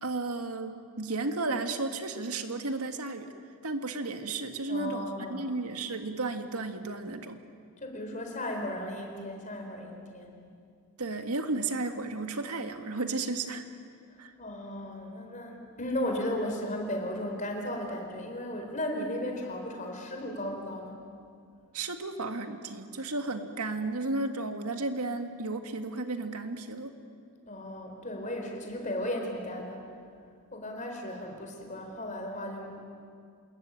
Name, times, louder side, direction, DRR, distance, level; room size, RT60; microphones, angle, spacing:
voice 1, 0.0-3.3 3.6-7.4 11.0-13.6 14.2-14.3 21.7-26.9, right 3 dB, 85° right, 6 dB, 2.0 m, -33 dB
voice 2, 4.7-5.5 7.8-10.4 14.1-21.1 27.5-29.9 30.5-32.8, left 1 dB, 35° left, 2 dB, 4.5 m, -35 dB
27.5 x 21.5 x 9.1 m, 2.2 s
head